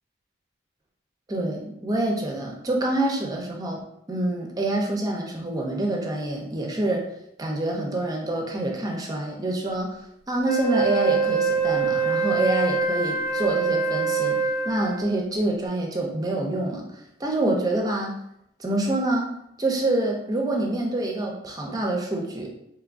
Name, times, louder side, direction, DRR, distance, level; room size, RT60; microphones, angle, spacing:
voice 1, 1.3-3.8 4.1-7.0 7.4-10.0 10.3-14.4 14.6-16.9 17.2-18.2 18.6-19.3 19.6-22.5, right 2 dB, 20° right, 1 dB, 0.5 m, -26 dB
Wind instrument woodwind instrument, 10.4-15.2, right 4 dB, 55° left, 0.6 m, -24 dB
3.5 x 3.3 x 2.5 m, 0.80 s
head